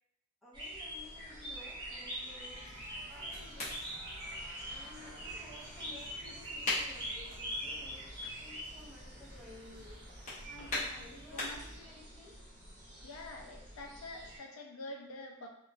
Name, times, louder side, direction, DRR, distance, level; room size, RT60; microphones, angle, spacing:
voice 1, 0.4-3.8 4.7-10.1 10.9-12.6, left 2 dB, ahead, -6 dB, 0.4 m, -55 dB
sound 1, 0.5-14.4, equal, 20° right, 1.0 m, -45 dB
sound 2, 0.8-10.9 11.4-11.5 11.8-11.9, right 2 dB, 70° right, 0.7 m, -57 dB
sound 3, 2.5-11.8, left 2 dB, 35° left, 0.9 m, -43 dB
voice 2, 10.4-11.6 13.0-15.5, left 2 dB, 75° left, 2 dB, 0.4 m, -47 dB
2.9 x 2.1 x 2.5 m, 0.80 s
head